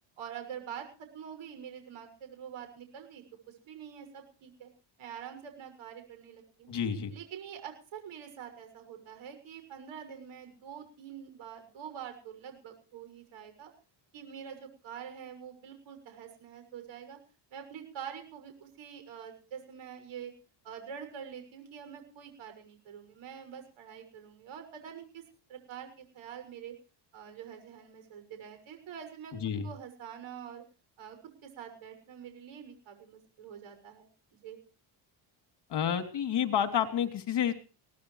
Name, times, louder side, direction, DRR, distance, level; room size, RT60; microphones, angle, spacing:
voice 1, 0.2-4.7 5.0-6.7 7.1-13.7 14.1-17.2 17.5-20.3 20.6-25.2 25.5-26.7 27.1-29.3 29.6-30.6 31.0-31.2 31.4-34.6, right 8 dB, 70° right, 7 dB, 6.7 m, -46 dB
voice 2, 6.7-7.1 29.4-29.7 35.7-37.5, left 8 dB, 55° left, 7 dB, 3.2 m, -29 dB
23.5 x 18.0 x 3.3 m, 0.36 s
cardioid pair, 115°, 50 cm